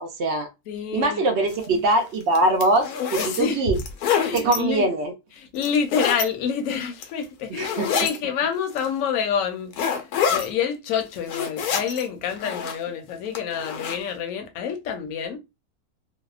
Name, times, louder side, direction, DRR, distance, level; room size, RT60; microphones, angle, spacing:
voice 1, 0.0-0.5 0.9-3.8 4.3-5.1 7.5-8.1, right 2 dB, 70° right, 0.6 m, -22 dB
voice 2, 0.7-1.3 3.2-3.8 4.2-4.9 5.4-15.4, left 7 dB, 70° left, 0.9 m, -27 dB
sound 1, 1.5-1.6 2.2-3.4 3.8-4.6 5.6-6.2 6.8-7.2 7.6-8.2 8.8-8.9 9.7-10.5 11.0-12.0 12.3-12.9 13.3-14.0, left 7 dB, 90° left, 1.1 m, -26 dB
2.7 x 2.1 x 2.3 m
omnidirectional pair, 1.6 m